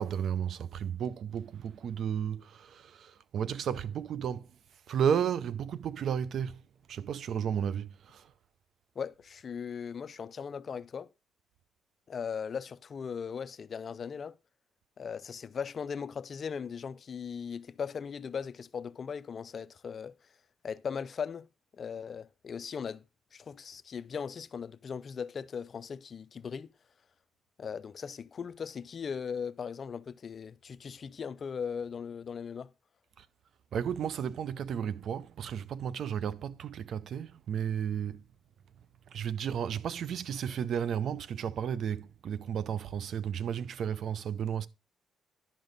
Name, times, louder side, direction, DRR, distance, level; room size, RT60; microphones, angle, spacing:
voice 1, 0.0-4.6 4.9-6.6 6.9-8.3 33.2-33.3 33.7-38.3 39.1-44.7, right 8 dB, 65° right, 0.5 m, -33 dB
voice 2, 9.0-11.1 12.1-14.3 15.0-20.2 20.6-21.5 21.8-23.0 23.3-26.7 27.6-32.7, left 6 dB, 45° left, 0.4 m, -38 dB
11.0 x 5.3 x 4.0 m
cardioid pair, 90°, 0 cm